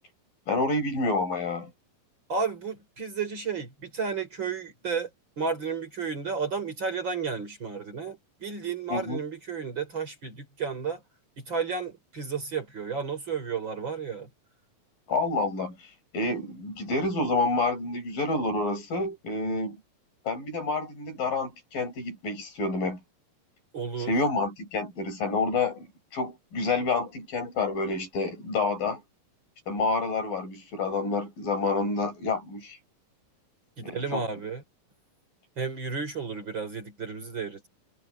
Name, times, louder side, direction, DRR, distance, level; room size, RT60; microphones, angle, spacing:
voice 1, 0.5-1.7 8.9-9.2 15.1-15.8 16.1-19.8 20.3-23.0 24.0-25.9 26.1-29.0 29.7-32.8 33.8-34.3, left 3 dB, 70° left, 7.4 m, -28 dB
voice 2, 2.3-5.1 5.4-11.0 11.4-14.3 23.7-24.1 33.8-34.6 35.6-37.7, right 5 dB, 35° right, 4.2 m, -32 dB
omnidirectional pair, 4.1 m